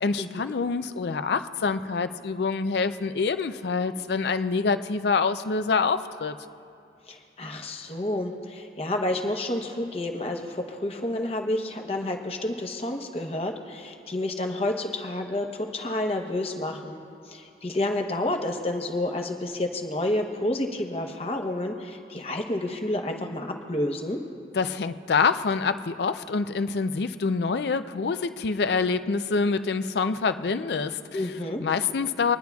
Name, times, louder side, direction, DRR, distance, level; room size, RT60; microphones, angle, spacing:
voice 1, 0.0-6.4 24.5-31.3 31.6-32.4, left 4 dB, 70° left, 11 dB, 0.4 m, -26 dB
voice 2, 7.1-17.0 17.3-24.2 31.1-31.6, left 1 dB, 35° left, 3 dB, 0.9 m, -29 dB
26.5 x 10.0 x 2.3 m, 2.7 s
head